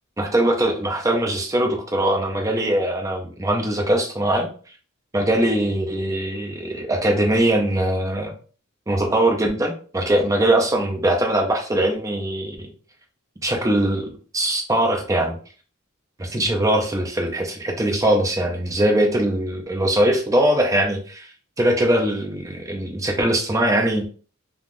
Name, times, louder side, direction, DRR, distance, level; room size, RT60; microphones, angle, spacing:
voice 1, 0.2-4.5 5.1-8.3 8.9-12.7 13.4-15.4 16.2-21.3 21.6-24.1, right 1 dB, 15° right, 2 dB, 0.5 m, -21 dB
3.4 x 2.3 x 2.5 m, 0.40 s
head